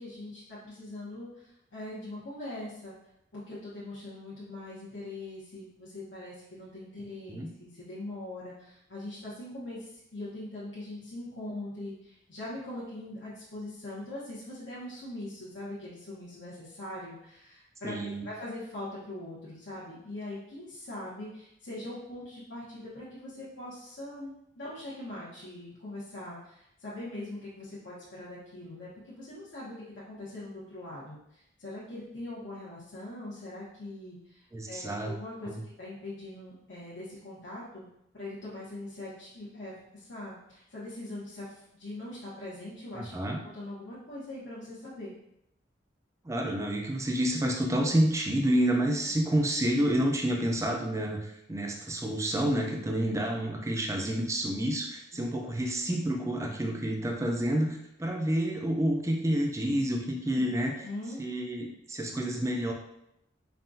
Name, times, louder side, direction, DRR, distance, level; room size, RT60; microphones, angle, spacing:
voice 1, 0.0-2.9 3.3-37.8 38.1-43.1 43.5-45.1 49.0-49.2 55.1-55.2 60.3-61.2, left 1 dB, 80° left, -9 dB, 1.1 m, -42 dB
voice 2, 17.8-18.3 34.5-35.1 35.5-35.6 42.9-43.4 46.2-51.2 51.5-60.7 61.2-62.7, right 1 dB, 15° right, 1 dB, 0.4 m, -29 dB
5.5 x 2.3 x 2.6 m, 0.80 s
head